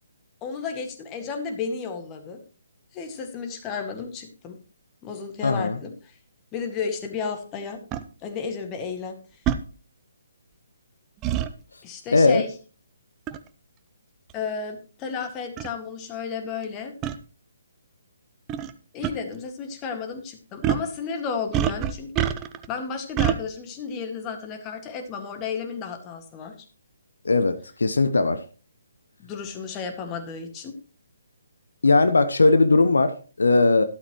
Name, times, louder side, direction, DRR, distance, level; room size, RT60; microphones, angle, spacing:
voice 1, 0.4-2.4 2.9-4.6 5.0-5.9 6.5-7.8 8.2-9.2 11.8-12.5 14.3-16.9 18.9-22.1 22.7-26.6 29.2-30.8, left 5 dB, 20° left, 5 dB, 1.9 m, -33 dB
voice 2, 5.4-5.8 12.1-12.4 27.2-28.4 31.8-33.8, left 3 dB, 70° left, 11 dB, 0.9 m, -19 dB
sound 1, 7.9-8.0 9.5-9.6 11.2-11.5 13.3-13.5 14.3-14.4 15.2-15.3 15.6-15.7 17.0-17.2 18.5-18.7 19.0-19.1 20.6-20.9 21.5-22.7 23.2-23.4, right 10 dB, 20° right, 0.6 m, -25 dB
12.5 x 12.0 x 3.1 m, 0.37 s
figure-of-eight pair, 140°, 0 cm